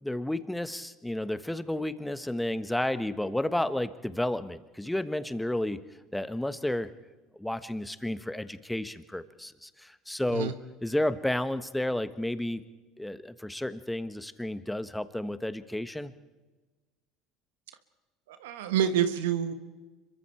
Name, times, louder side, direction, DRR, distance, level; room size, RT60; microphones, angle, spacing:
voice 1, 0.0-5.8 6.1-6.9 7.4-10.5 10.8-12.6 13.0-16.1, left 1 dB, 5° left, 12 dB, 1.3 m, -31 dB
voice 2, 18.3-19.5, right 9 dB, 80° right, 10 dB, 1.4 m, -27 dB
26.0 x 23.0 x 4.5 m, 1.2 s
hypercardioid pair, 80°, 0 cm